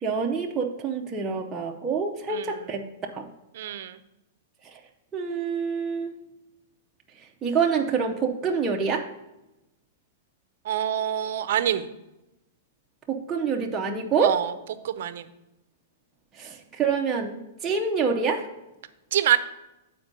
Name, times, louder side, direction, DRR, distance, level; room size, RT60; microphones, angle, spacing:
voice 1, 0.0-2.8 3.1-3.3 4.7-4.8 5.1-6.1 7.4-9.1 13.1-14.3 16.4-18.4, right 5 dB, 15° right, 0 dB, 0.5 m, -26 dB
voice 2, 3.5-4.0 10.6-11.9 14.2-14.5 14.8-15.3 19.1-19.4, right 11 dB, 60° right, 12 dB, 0.5 m, -25 dB
7.6 x 4.4 x 5.2 m, 0.96 s
hypercardioid pair, 155°, 0 cm